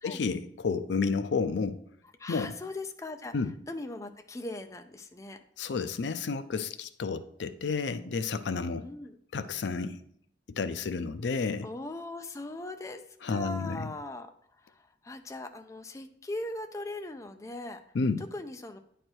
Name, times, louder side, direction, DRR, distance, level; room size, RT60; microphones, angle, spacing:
voice 1, 0.0-1.8 2.3-2.5 3.3-3.5 5.6-8.8 9.3-10.0 10.6-11.7 13.2-13.9 17.9-18.2, left 4 dB, 75° left, 11 dB, 0.5 m, -31 dB
voice 2, 2.2-3.3 3.7-5.4 8.8-9.2 11.6-17.8 18.2-18.8, left 2 dB, 15° left, 6 dB, 0.4 m, -40 dB
9.6 x 3.3 x 4.4 m, 0.67 s
head